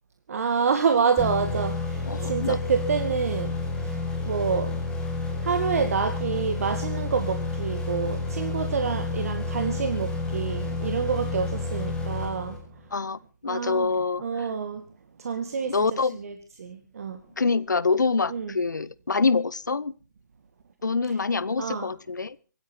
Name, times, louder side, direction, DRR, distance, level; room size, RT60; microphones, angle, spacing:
voice 1, 0.3-3.5 3.8-4.0 4.3-4.7 5.4-12.6 13.5-13.9 14.2-14.8 15.2-15.7 16.2-16.3 16.6-17.2 18.3-18.5 21.6-21.9, right 6 dB, 50° right, 7 dB, 2.2 m, -27 dB
sound 1, 1.2-12.9, left 3 dB, 10° left, 5.1 m, -30 dB
voice 2, 2.0-2.6 4.7-4.8 12.9-14.5 15.7-16.2 17.4-19.9 20.8-22.4, left 4 dB, 75° left, 21 dB, 0.9 m, -26 dB
25.5 x 9.7 x 4.5 m, 0.37 s
figure-of-eight pair, 145°, 10 cm